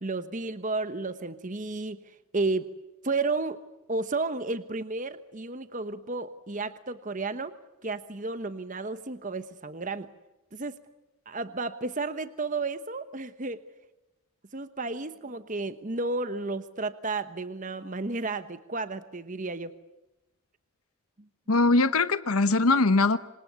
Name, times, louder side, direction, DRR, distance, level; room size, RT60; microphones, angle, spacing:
voice 1, 0.0-2.0 2.3-2.7 3.0-3.6 3.9-7.6 7.8-10.1 10.5-10.8 11.3-13.6 14.5-19.7, right 3 dB, 35° right, 11 dB, 1.0 m, -32 dB
voice 2, 21.5-23.2, left 3 dB, 80° left, 13 dB, 1.0 m, -21 dB
26.5 x 26.0 x 8.1 m, 1.0 s
head